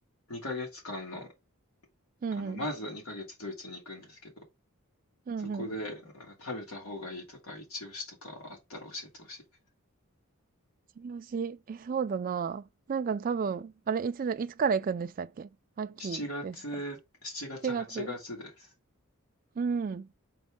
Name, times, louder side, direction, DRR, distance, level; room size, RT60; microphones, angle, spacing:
voice 1, 0.3-1.3 2.4-4.3 5.4-9.4 16.0-18.7, left 1 dB, 90° left, 2.8 m, -39 dB
voice 2, 2.2-2.6 5.3-5.7 11.0-15.5 15.8-16.6 17.6-18.1 19.6-20.1, right 6 dB, 40° right, 0.3 m, -32 dB
6.2 x 4.5 x 3.6 m
head